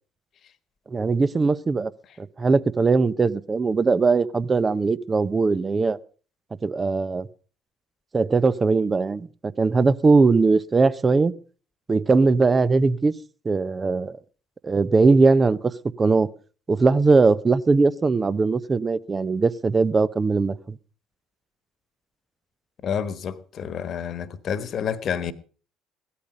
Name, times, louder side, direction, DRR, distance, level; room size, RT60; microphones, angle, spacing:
voice 1, 0.9-1.9 2.2-6.0 6.6-7.3 8.1-11.3 11.9-13.1 13.4-14.2 14.6-15.7 16.0-16.3 16.7-20.8, right 4 dB, 25° right, 0.8 m, -20 dB
voice 2, 22.8-25.3, left 7 dB, 45° left, 1.4 m, -29 dB
17.0 x 13.0 x 5.2 m
figure-of-eight pair, 55°, 0 cm